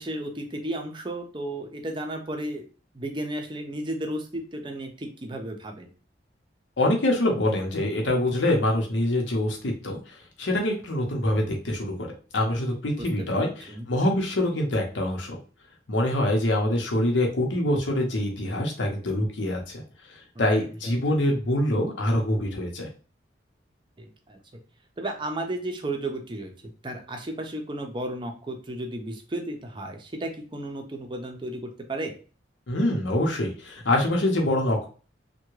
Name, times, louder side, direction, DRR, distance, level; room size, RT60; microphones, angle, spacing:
voice 1, 0.0-2.7 2.9-5.9 13.0-13.9 20.4-21.0 24.0-24.4 25.0-26.5 26.8-32.1, right 1 dB, 25° right, 3 dB, 0.5 m, -34 dB
voice 2, 6.8-12.1 12.3-15.4 15.9-19.8 20.4-22.9 32.7-34.9, left 1 dB, 85° left, 1 dB, 0.9 m, -25 dB
3.4 x 2.2 x 3.1 m, 0.37 s
head